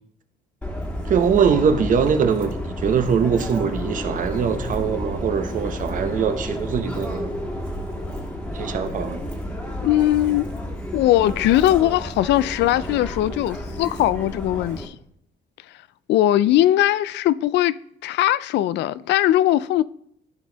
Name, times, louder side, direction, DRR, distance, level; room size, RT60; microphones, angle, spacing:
Subway metro underground, 0.6-14.9, equal, 5° left, 1.6 m, -31 dB
voice 1, 1.1-7.3 8.5-9.2, right 6 dB, 50° right, 1.0 m, -22 dB
voice 2, 9.8-10.5 10.9-15.0 16.1-17.8 18.0-19.8, left 13 dB, 80° left, 0.4 m, -20 dB
13.5 x 5.4 x 4.0 m
cardioid pair, 130°, 18 cm